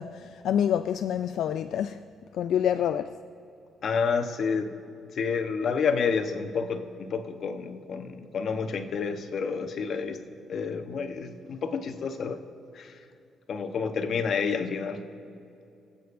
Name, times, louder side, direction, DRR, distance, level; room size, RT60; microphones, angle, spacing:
voice 1, 0.0-2.0 2.3-3.2, left 9 dB, 75° left, 0.3 m, -27 dB
voice 2, 3.8-4.8 5.1-10.2 10.5-12.4 12.7-13.0 13.5-15.0, left 5 dB, 60° left, 1.0 m, -29 dB
24.5 x 8.4 x 2.6 m
cardioid pair, 90°, 0 cm